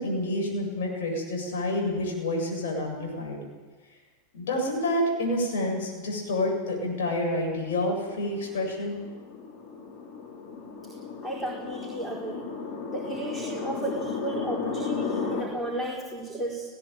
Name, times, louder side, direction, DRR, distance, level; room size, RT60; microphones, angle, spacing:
voice 1, 0.0-3.4 4.3-9.0, left 1 dB, 65° left, 1 dB, 8.0 m, -28 dB
sound 1, 7.5-15.4, left 5 dB, 45° left, 5.7 m, -35 dB
voice 2, 11.2-12.4 12.9-16.6, right 1 dB, 10° left, -1 dB, 4.3 m, -34 dB
19.5 x 17.0 x 9.5 m, 1.4 s
figure-of-eight pair, 90°, 0 cm